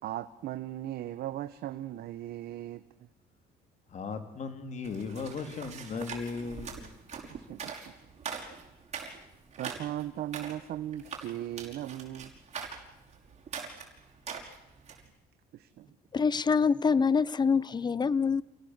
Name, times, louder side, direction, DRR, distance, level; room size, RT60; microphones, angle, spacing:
voice 1, 0.0-2.8 7.3-7.9 9.6-12.3 15.5-15.9, right 13 dB, 70° right, 1.0 m, -38 dB
voice 2, 3.9-7.0, left 5 dB, 45° left, 3.5 m, -37 dB
sound 1, 4.8-15.1, right 6 dB, 40° right, 5.7 m, -43 dB
voice 3, 16.1-18.4, left 5 dB, 25° left, 0.8 m, -25 dB
28.5 x 18.0 x 8.2 m
cardioid pair, 110°, 17 cm